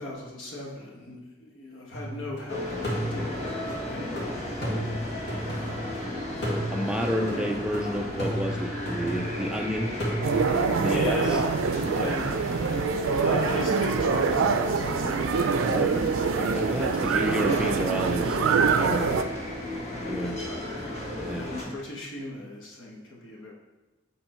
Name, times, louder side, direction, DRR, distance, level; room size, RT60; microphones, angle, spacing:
voice 1, 0.0-6.2 7.3-7.5 10.8-11.5 11.9-12.3 13.2-16.1 16.9-17.3 20.0-23.5, left 1 dB, 75° left, -2 dB, 1.4 m, -39 dB
sound 1, 1.9-2.4 2.8-6.0 6.4-9.6 10.0-11.5, equal, 60° left, 2.0 m, -34 dB
sound 2, 2.5-21.6, left 1 dB, 35° left, 1.5 m, -34 dB
voice 2, 6.4-9.9 10.4-11.4 11.8-12.2 15.5-18.4 18.8-19.3 20.1-20.4 21.1-21.7, equal, 5° right, 3 dB, 0.3 m, -31 dB
sound 3, 10.2-19.2, right 5 dB, 90° right, 0.4 m, -25 dB
7.1 x 3.8 x 4.3 m, 1.1 s
head